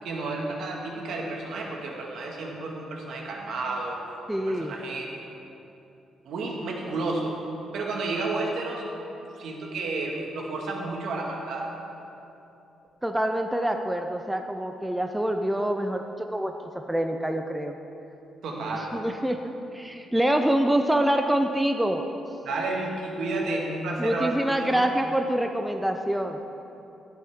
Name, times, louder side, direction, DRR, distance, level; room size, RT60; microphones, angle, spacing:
voice 1, 0.0-4.0 4.5-5.1 6.2-7.4 7.7-8.8 9.4-11.7 18.4-19.0 22.4-24.9, right 2 dB, 70° right, -1 dB, 1.8 m, -31 dB
voice 2, 4.3-4.7 13.0-16.5 16.9-17.7 18.9-22.0 24.0-26.4, right 1 dB, 5° right, 4 dB, 0.4 m, -26 dB
12.5 x 10.5 x 3.7 m, 2.9 s
cardioid pair, 155°, 0 cm